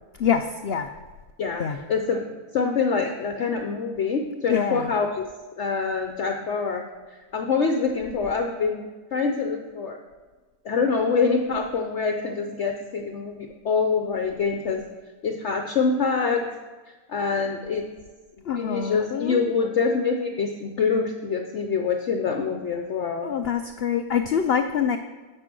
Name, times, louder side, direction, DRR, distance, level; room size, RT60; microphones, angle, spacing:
voice 1, 0.2-0.9 1.6-1.8 4.5-4.9 18.5-19.4 23.2-25.0, left 7 dB, 75° left, 8 dB, 0.5 m, -25 dB
voice 2, 1.4-2.2 2.5-5.3 5.6-6.8 7.1-10.0 10.6-14.8 15.2-16.5 17.1-17.9 18.4-23.3, left 5 dB, 55° left, 4 dB, 0.9 m, -25 dB
9.9 x 6.8 x 6.1 m, 1.3 s
omnidirectional pair, 1.6 m